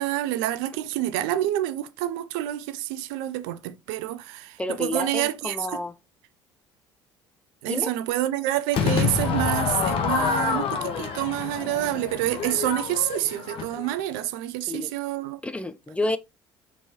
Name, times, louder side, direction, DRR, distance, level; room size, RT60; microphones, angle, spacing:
voice 1, 0.0-5.8 7.6-15.4, right 14 dB, 60° right, 0.4 m, -28 dB
voice 2, 4.6-5.9 7.6-7.9 14.7-14.9 15.4-16.2, left 2 dB, 10° left, 0.3 m, -30 dB
Crowd / Fireworks, 8.7-14.0, left 6 dB, 45° left, 0.9 m, -27 dB
4.3 x 3.1 x 2.8 m
figure-of-eight pair, 55°, 13 cm